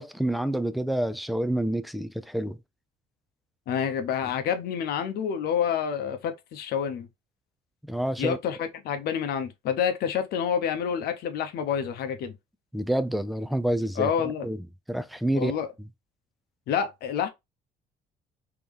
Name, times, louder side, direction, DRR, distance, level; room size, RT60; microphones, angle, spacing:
voice 1, 0.0-2.6 7.9-8.4 12.7-14.6 14.9-15.5, right 1 dB, ahead, 0.4 m, -28 dB
voice 2, 3.7-7.1 8.2-12.3 14.0-14.5 15.4-15.7 16.7-17.3, left 8 dB, 70° left, 0.8 m, -28 dB
3.5 x 2.9 x 3.3 m
cardioid pair, 110°, 17 cm